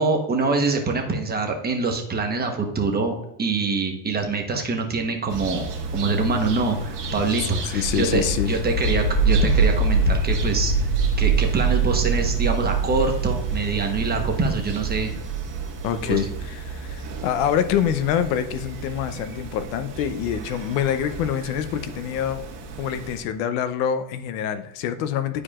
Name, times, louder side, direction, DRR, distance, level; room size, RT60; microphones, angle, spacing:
voice 1, 0.0-5.7 5.9-10.7 11.2-15.1 16.1-16.2, right 3 dB, 20° right, 3 dB, 1.1 m, -25 dB
sound 1, 5.3-23.3, right 2 dB, 40° right, 1.8 m, -35 dB
voice 2, 7.6-8.6 15.8-22.4 22.8-25.4, left 9 dB, 75° left, 11 dB, 0.8 m, -26 dB
sound 2, 7.8-18.5, right 4 dB, 5° left, 1.5 m, -24 dB
11.0 x 4.8 x 2.4 m, 0.80 s
cardioid pair, 130°, 50 cm